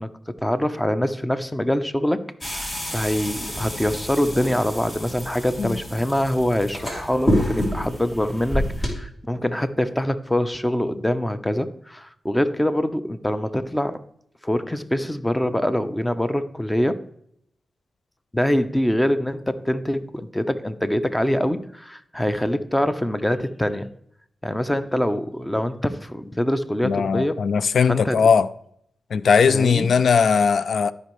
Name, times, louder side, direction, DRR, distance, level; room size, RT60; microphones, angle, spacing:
voice 1, 0.0-2.2 2.5-14.0 14.4-17.0 18.3-23.9 24.4-27.4 27.9-28.2 29.5-29.9, left 1 dB, 10° left, 0.8 m, -24 dB
sound 1, 2.4-8.9, equal, 35° left, 2.7 m, -28 dB
voice 2, 26.8-28.5 29.1-30.9, left 6 dB, 75° left, 0.4 m, -19 dB
13.0 x 5.4 x 3.2 m
supercardioid pair, 45°, 0 cm